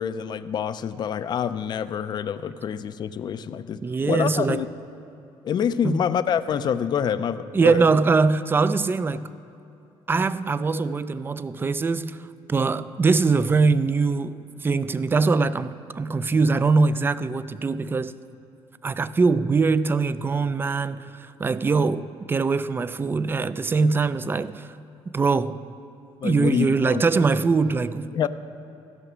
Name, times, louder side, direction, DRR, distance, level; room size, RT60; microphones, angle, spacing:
voice 1, 0.0-4.7 5.4-7.8 26.2-27.0 28.1-28.3, left 8 dB, 45° left, 0.4 m, -26 dB
voice 2, 3.8-4.7 5.8-6.1 7.5-9.3 10.1-18.1 18.8-24.8 25.1-25.6 26.2-28.3, right 4 dB, 20° right, 0.3 m, -22 dB
15.0 x 6.0 x 6.1 m
cardioid pair, 105°, 10 cm